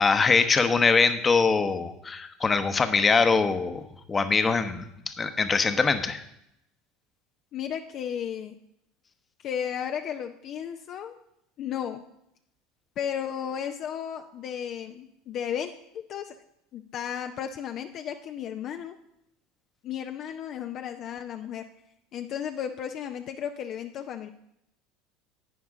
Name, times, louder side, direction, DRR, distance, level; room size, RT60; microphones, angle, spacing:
voice 1, 0.0-3.8 4.1-6.2, left 4 dB, 25° left, 9 dB, 1.0 m, -23 dB
voice 2, 7.5-8.6 9.4-11.2 11.6-12.0 13.0-16.4 16.7-19.0 19.8-21.6 22.1-24.3, left 9 dB, 50° left, 6 dB, 0.6 m, -34 dB
11.0 x 9.2 x 3.8 m, 0.78 s
hypercardioid pair, 75°, 0 cm